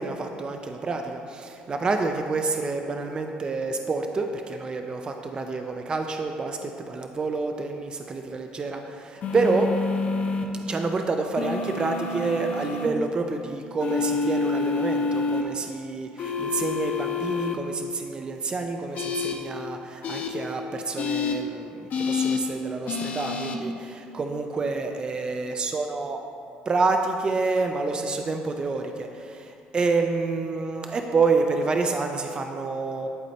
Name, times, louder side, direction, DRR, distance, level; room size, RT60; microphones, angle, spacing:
voice 1, 0.0-9.7 10.7-26.2 26.7-33.1, right 3 dB, 30° right, 4 dB, 0.4 m, -28 dB
sound 1, 9.2-10.4 11.4-12.9 13.8-15.4 16.2-17.5 18.9-19.3 20.0-20.3 21.0-21.3 21.9-22.4 22.9-23.6, left 4 dB, 55° left, 0.7 m, -27 dB
11.0 x 4.1 x 2.8 m, 2.6 s
cardioid pair, 100°, 3 cm